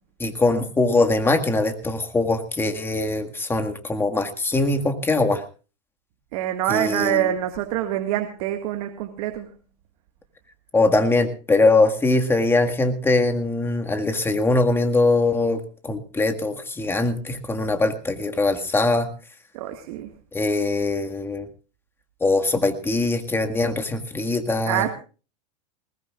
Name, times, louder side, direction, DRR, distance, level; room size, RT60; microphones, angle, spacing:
voice 1, 0.2-5.4 6.7-7.3 10.7-19.1 20.3-21.5 22.2-24.9, left 2 dB, 10° left, 6 dB, 1.8 m, -22 dB
voice 2, 6.3-9.5 19.5-20.1 24.7-24.9, right 12 dB, 60° right, 5 dB, 1.8 m, -25 dB
20.5 x 19.5 x 2.4 m, 0.34 s
supercardioid pair, 130°, 21 cm